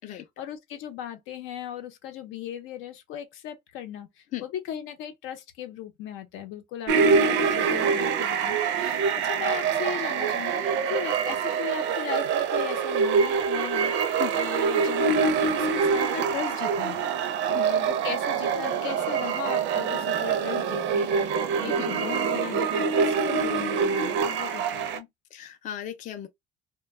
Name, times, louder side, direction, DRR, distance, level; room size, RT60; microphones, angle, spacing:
voice 1, 0.0-25.1, left 10 dB, 80° left, 0.7 m, -37 dB
sound 1, 6.9-25.0, right 6 dB, 65° right, 0.5 m, -25 dB
voice 2, 25.3-26.3, left 12 dB, 40° left, 0.4 m, -36 dB
2.2 x 2.1 x 3.2 m
cardioid pair, 165°, 20 cm